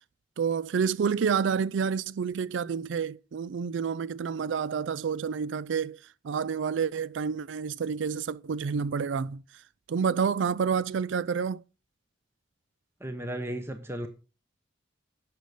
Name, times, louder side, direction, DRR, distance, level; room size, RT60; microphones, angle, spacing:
voice 1, 0.4-6.0 6.2-9.4 9.9-11.6, right 6 dB, 75° right, 0.4 m, -29 dB
voice 2, 13.0-14.1, right 1 dB, 15° right, 0.9 m, -34 dB
10.5 x 6.7 x 5.1 m
head